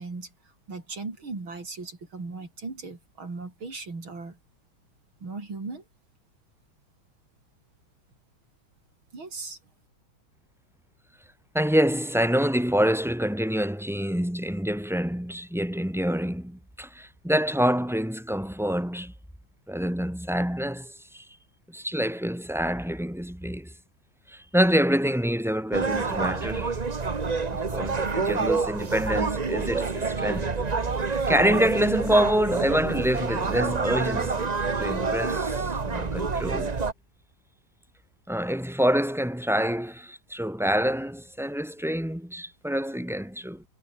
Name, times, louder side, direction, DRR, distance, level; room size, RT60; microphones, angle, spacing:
voice 1, 0.0-4.4 5.2-5.8 9.1-9.6, right 3 dB, 90° right, 5.9 m, -38 dB
voice 2, 11.5-19.1 19.7-21.3 21.7-23.7 24.3-26.7 27.5-30.5 31.0-34.5 34.8-36.8 38.3-43.6, equal, ahead, 1.3 m, -26 dB
sound 1, 25.7-36.9, right 4 dB, 25° right, 1.0 m, -27 dB
omnidirectional pair, 2.2 m